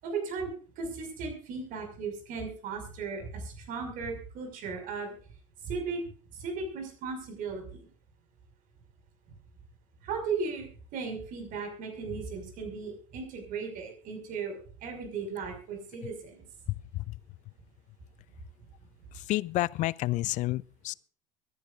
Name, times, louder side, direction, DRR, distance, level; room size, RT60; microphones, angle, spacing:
voice 1, 0.0-5.1 5.6-6.0 6.3-7.9 10.0-16.5, right 4 dB, 50° right, 5.9 m, -36 dB
voice 2, 16.7-17.2 19.1-20.9, left 18 dB, 45° left, 0.5 m, -30 dB
23.5 x 10.5 x 2.6 m
hypercardioid pair, 75°, 17 cm